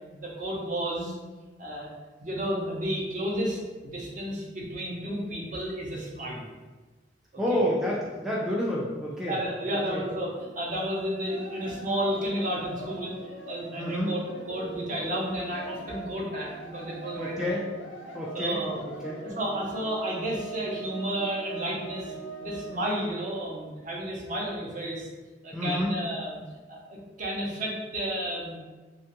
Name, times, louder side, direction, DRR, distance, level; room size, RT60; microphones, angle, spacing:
voice 1, 0.0-1.1 1.6-1.9 2.2-6.5 9.3-14.2 14.5-17.5 18.3-18.8 19.2-22.1 22.4-25.1 25.4-26.4 26.7-28.6, equal, 45° right, -3 dB, 0.6 m, -32 dB
voice 2, 7.4-9.4 9.9-10.0 13.8-14.1 17.2-17.7 18.1-18.6 19.0-19.2 25.5-25.9, equal, ahead, -6 dB, 0.3 m, -29 dB
sound 1, 11.3-24.0, right 3 dB, 90° left, 0.5 m, -42 dB
2.8 x 2.3 x 2.9 m, 1.3 s
head